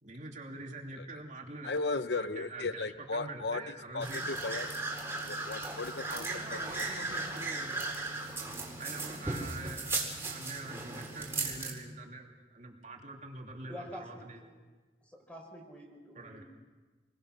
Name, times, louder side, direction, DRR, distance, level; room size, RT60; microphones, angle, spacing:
voice 1, 0.0-1.7 2.1-4.2 6.0-7.8 8.8-14.4 16.1-16.4, right 3 dB, 45° right, 1 dB, 2.9 m, -45 dB
voice 2, 1.6-3.6 3.9-4.7 5.3-6.3 6.5-7.0, left 3 dB, 75° left, 12 dB, 0.8 m, -36 dB
sound 1, 4.0-11.7, right 3 dB, 15° right, 4.3 m, -37 dB
voice 3, 13.7-14.5 15.0-16.4, equal, 5° left, 1 dB, 5.4 m, -47 dB
28.5 x 22.0 x 6.5 m, 1.3 s
head